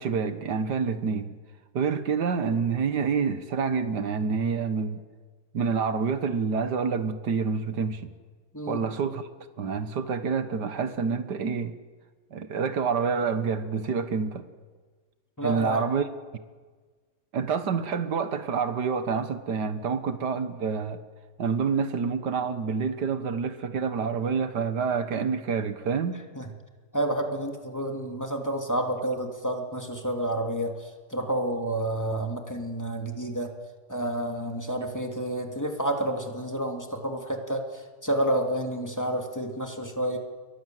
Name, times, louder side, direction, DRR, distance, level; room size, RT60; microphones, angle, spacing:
voice 1, 0.0-1.4 1.7-5.0 5.5-8.1 8.7-9.2 9.6-11.7 12.3-14.4 15.4-16.0 17.3-21.0 21.4-26.2, right 5 dB, 85° right, 2.0 m, -27 dB
voice 2, 15.4-15.9 26.3-26.5 26.9-33.5 33.9-40.2, right 1 dB, 10° left, 2.8 m, -29 dB
29.5 x 22.5 x 7.8 m
omnidirectional pair, 1.8 m